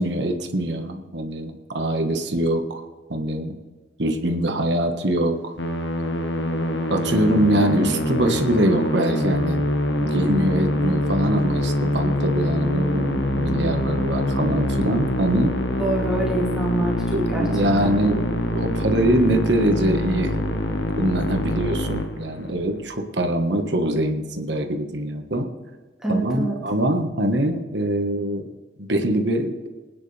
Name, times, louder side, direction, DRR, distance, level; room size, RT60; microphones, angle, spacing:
voice 1, 0.0-2.8 3.1-3.5 4.0-5.5 6.9-9.7 10.0-15.5 17.1-20.3 21.0-25.5 26.1-28.4 28.8-29.5, right 1 dB, 70° right, 5 dB, 1.5 m, -23 dB
Musical instrument, 5.6-22.7, left 1 dB, 80° left, 1.5 m, -24 dB
voice 2, 15.8-17.5 17.8-18.0 26.0-26.6, right 1 dB, 5° right, -4 dB, 2.3 m, -26 dB
24.5 x 9.7 x 3.4 m, 1.3 s
head